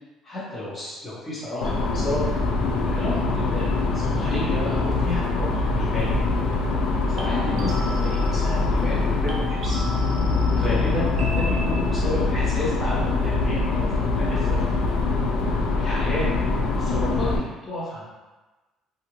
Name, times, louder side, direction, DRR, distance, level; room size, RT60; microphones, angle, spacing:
voice 1, 0.2-2.3 2.8-3.6 3.9-6.1 7.1-9.8 10.5-13.8 14.1-14.7 15.7-16.3 16.7-18.1, left 1 dB, 20° left, -8 dB, 1.1 m, -31 dB
sound 1, 1.6-17.4, left 3 dB, 90° left, 0.4 m, -23 dB
sound 2, 7.2-9.0 9.3-12.2, right 2 dB, 45° right, 0.5 m, -37 dB
2.5 x 2.4 x 3.0 m, 1.2 s
cardioid pair, 140°, 0 cm